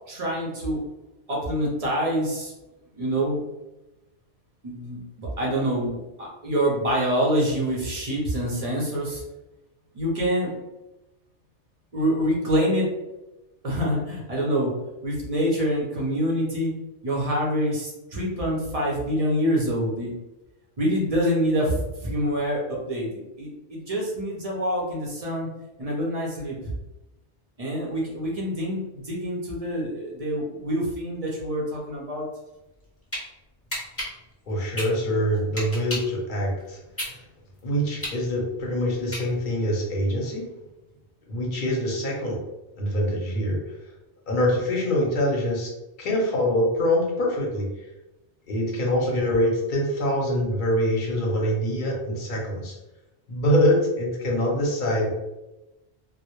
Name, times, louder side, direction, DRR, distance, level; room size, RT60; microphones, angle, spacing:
voice 1, 0.1-0.8 1.3-2.5 2.9-3.4 4.6-9.2 9.9-10.6 11.9-12.9 13.6-14.7 15.0-16.7 17.0-20.1 20.8-25.5 25.8-26.7 27.6-32.3, equal, 45° right, -3 dB, 0.5 m, -26 dB
sound 1, 32.7-33.2 33.7-36.2 36.6-39.6, equal, 20° left, 0.5 m, -33 dB
voice 2, 34.5-36.8 37.1-37.2 37.6-40.5 41.3-42.4 42.8-43.6 44.3-45.7 46.0-47.7 48.5-52.8 53.3-55.1, equal, 55° left, -1 dB, 0.7 m, -24 dB
2.1 x 2.1 x 2.9 m, 1.0 s
omnidirectional pair, 1.2 m